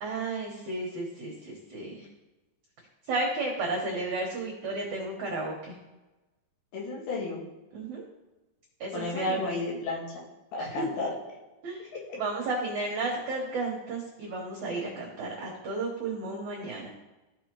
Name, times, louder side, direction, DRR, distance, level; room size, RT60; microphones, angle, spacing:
voice 1, 0.0-2.1 3.1-5.8 7.7-8.0 8.8-9.4 10.6-10.9 11.6-11.9 12.1-16.9, right 2 dB, 65° right, -2 dB, 1.9 m, -33 dB
voice 2, 6.7-7.4 8.9-10.1 10.5-11.1 11.9-12.0, left 2 dB, 65° left, -4 dB, 3.5 m, -32 dB
15.0 x 5.2 x 3.0 m, 1.1 s
omnidirectional pair, 5.1 m